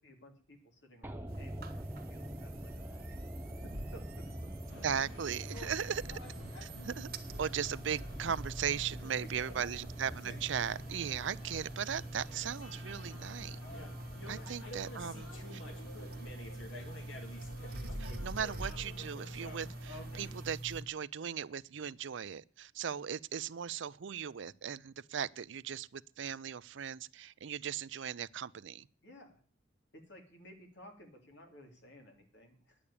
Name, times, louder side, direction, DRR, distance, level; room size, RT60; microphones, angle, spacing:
voice 1, 0.0-1.8 2.1-3.2 3.9-5.0 9.2-9.8 14.3-14.7 29.0-29.4 29.9-32.8, equal, 60° left, 3.2 m, -56 dB
sound 1, 1.0-19.2 19.5-19.6, right 1 dB, 10° right, 0.7 m, -48 dB
sound 2, 1.3-20.8, right 1 dB, 50° right, 1.4 m, -45 dB
sound 3, 4.7-20.4, left 1 dB, 75° left, 2.8 m, -50 dB
voice 2, 4.8-6.2 6.6-7.1 7.4-13.6 14.3-15.6 18.0-28.9, right 8 dB, 65° right, 0.5 m, -38 dB
10.0 x 8.7 x 8.5 m
head